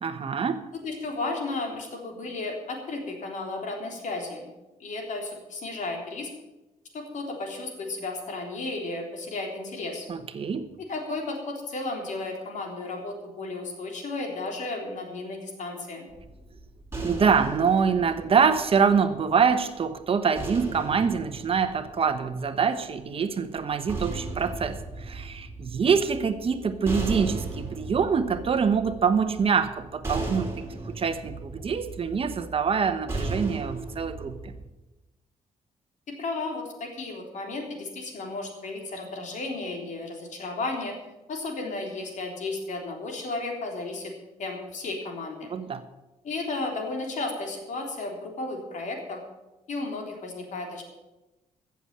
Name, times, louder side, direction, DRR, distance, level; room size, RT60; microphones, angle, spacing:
voice 1, 0.0-0.6 10.1-10.7 17.0-34.5 45.5-45.8, right 6 dB, 45° right, 10 dB, 1.1 m, -25 dB
voice 2, 0.7-4.5 4.8-6.3 6.9-10.1 10.8-16.1 36.1-40.9 41.3-44.1 44.4-45.6 46.2-49.2 49.7-50.8, left 3 dB, 65° left, 2 dB, 3.5 m, -34 dB
sound 1, 16.1-19.4 20.4-22.6 23.6-34.7, right 2 dB, 20° right, 3.7 m, -36 dB
15.0 x 7.1 x 7.5 m, 1.0 s
cardioid pair, 95°, 13 cm